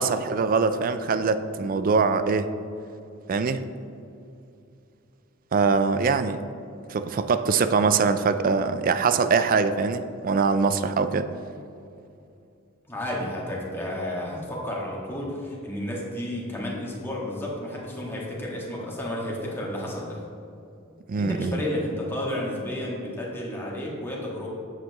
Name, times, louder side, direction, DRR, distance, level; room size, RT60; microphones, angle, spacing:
voice 1, 0.0-2.5 3.3-3.6 5.5-6.4 6.9-11.3 21.1-21.6, right 4 dB, 45° right, 10 dB, 0.4 m, -23 dB
voice 2, 12.9-20.2 21.1-24.5, left 1 dB, 10° left, -4 dB, 1.6 m, -32 dB
8.7 x 7.5 x 3.0 m, 2.6 s
head